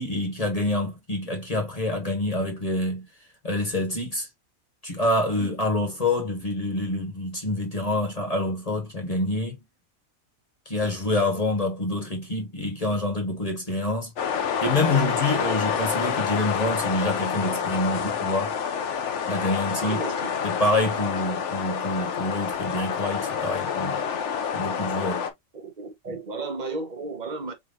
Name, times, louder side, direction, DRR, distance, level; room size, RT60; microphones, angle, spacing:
voice 1, 0.0-3.1 3.4-4.3 4.8-9.6 10.6-14.1 14.6-18.5 19.2-20.0 20.4-24.0 24.5-25.3 26.1-26.2, left 2 dB, 30° left, 1.4 m, -27 dB
sound 1, 14.2-25.3, left 7 dB, 60° left, 1.0 m, -28 dB
voice 2, 19.8-20.3 25.5-27.5, right 3 dB, 35° right, 1.0 m, -33 dB
4.4 x 4.0 x 2.6 m
omnidirectional pair, 1.5 m